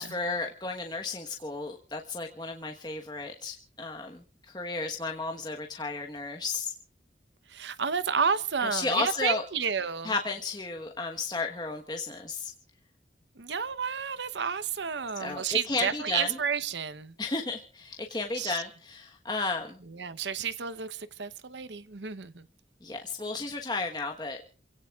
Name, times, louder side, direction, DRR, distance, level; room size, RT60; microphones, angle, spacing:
voice 1, 0.0-6.7 8.6-9.4 10.0-12.5 15.2-16.3 17.2-19.8 22.8-24.4, left 3 dB, 25° left, 1.3 m, -33 dB
voice 2, 7.5-10.1 13.4-17.1 18.4-18.6 19.9-22.5, right 6 dB, 90° right, 0.9 m, -31 dB
28.5 x 17.0 x 2.4 m
head